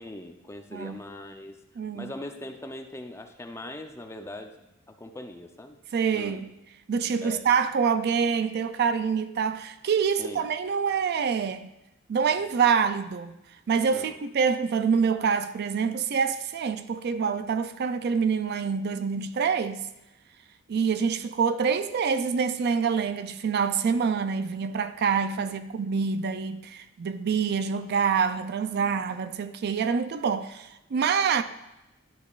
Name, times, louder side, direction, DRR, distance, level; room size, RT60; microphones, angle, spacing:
voice 1, 0.0-1.5 1.9-4.7 5.0-5.8 6.1-6.4 7.2-7.5 10.2-10.5 13.9-14.2 20.7-20.9 25.4-25.5, left 1 dB, 15° left, 0.6 m, -41 dB
voice 2, 0.7-1.0 1.8-2.1 5.9-6.5 6.9-11.7 12.1-13.4 13.7-19.8 20.7-31.4, right 6 dB, 50° right, 0.4 m, -26 dB
11.5 x 6.9 x 2.4 m
head